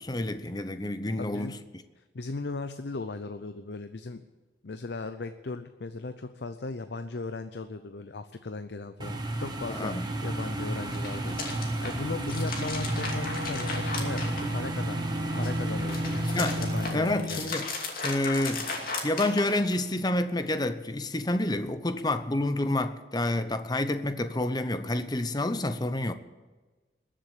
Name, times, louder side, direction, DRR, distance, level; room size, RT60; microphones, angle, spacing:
voice 1, 0.0-1.6 9.7-10.1 16.3-16.6 16.9-17.7 18.0-26.1, left 1 dB, 25° left, 0.7 m, -29 dB
voice 2, 1.2-1.6 2.1-4.2 4.6-16.3 16.6-17.5, left 3 dB, 75° left, 0.7 m, -37 dB
sound 1, 9.0-16.9, right 1 dB, 25° right, 1.5 m, -32 dB
sound 2, 10.9-14.9 15.3-19.9, left 3 dB, 55° left, 2.6 m, -36 dB
Bowed string instrument, 12.5-17.9, left 1 dB, 60° right, 2.5 m, -35 dB
21.5 x 7.6 x 8.4 m
head